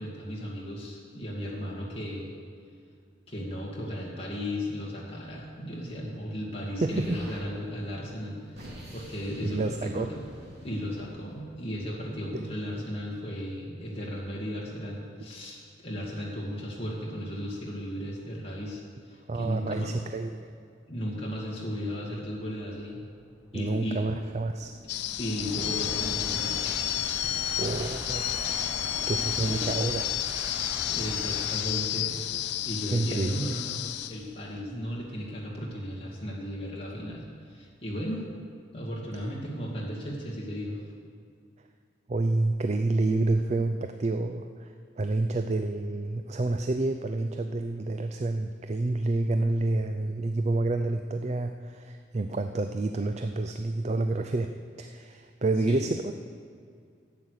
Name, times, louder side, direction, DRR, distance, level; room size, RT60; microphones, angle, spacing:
voice 1, 0.0-2.3 3.3-10.2 10.6-19.9 20.9-23.0 23.5-24.0 25.2-26.8 28.6-29.0 29.4-29.7 30.9-38.3 38.7-40.8 55.7-55.9, equal, 30° left, -5 dB, 2.2 m, -35 dB
voice 2, 6.8-7.2 9.4-10.1 19.3-20.5 23.5-24.7 27.6-30.1 32.9-33.4 42.1-56.1, right 2 dB, 35° right, 7 dB, 0.4 m, -29 dB
Explosion, 6.9-7.4 8.2-12.1, equal, 60° right, 2.9 m, -47 dB
sound 1, 22.4-35.7, equal, 15° right, 1.6 m, -41 dB
sound 2, 24.9-34.3, left 13 dB, 60° left, 0.4 m, -31 dB
12.5 x 8.5 x 6.6 m, 2.2 s
head